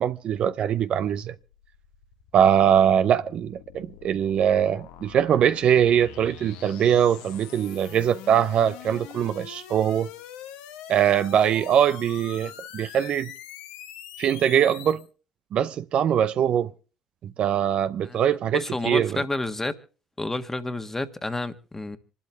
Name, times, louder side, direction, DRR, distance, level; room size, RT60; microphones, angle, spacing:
voice 1, 0.0-1.3 2.3-10.1 10.9-13.3 14.2-15.0 15.5-16.7 17.2-19.2, right 9 dB, 55° right, 0.6 m, -22 dB
sound 1, 1.0-15.1, left 10 dB, 75° left, 1.1 m, -44 dB
voice 2, 18.5-19.7 20.2-22.0, left 2 dB, 15° left, 1.5 m, -30 dB
26.5 x 12.0 x 3.5 m
hypercardioid pair, 65°, 2 cm